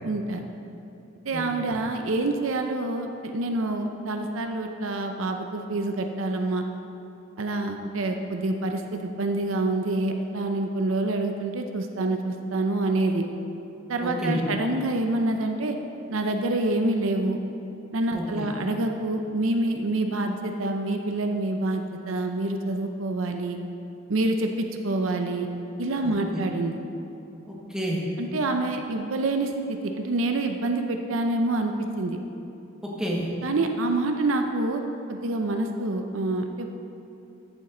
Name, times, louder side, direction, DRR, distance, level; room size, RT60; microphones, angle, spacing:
voice 1, 0.0-0.4 1.3-6.6 7.4-13.3 13.9-15.8 16.1-17.4 17.9-23.6 24.1-25.5 25.8-26.8 28.2-32.2 33.4-34.8 35.1-36.7, right 2 dB, 70° right, 4 dB, 0.6 m, -27 dB
voice 2, 14.0-14.4 18.1-18.5 27.5-28.0 33.0-33.3, equal, 5° right, -4 dB, 1.4 m, -29 dB
14.0 x 7.4 x 3.8 m, 2.8 s
head